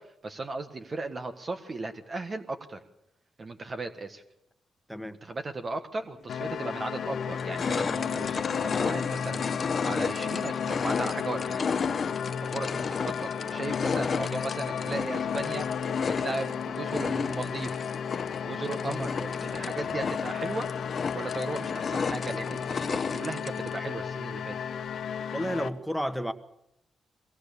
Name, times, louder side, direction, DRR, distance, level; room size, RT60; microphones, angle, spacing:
voice 1, 0.0-2.8 3.4-4.2 5.0-9.5 9.8-11.7 12.5-15.7 16.1-17.8 18.4-20.7 21.1-24.6, right 3 dB, 40° right, 6 dB, 1.5 m, -36 dB
sound 1, 6.3-25.7, left 7 dB, 75° left, 1.0 m, -33 dB
sound 2, 6.3-6.4 7.0-23.8, left 5 dB, 45° left, 0.9 m, -33 dB
voice 2, 25.3-26.3, equal, ahead, 10 dB, 1.6 m, -31 dB
22.0 x 18.0 x 6.9 m, 0.80 s
cardioid pair, 75°, 0 cm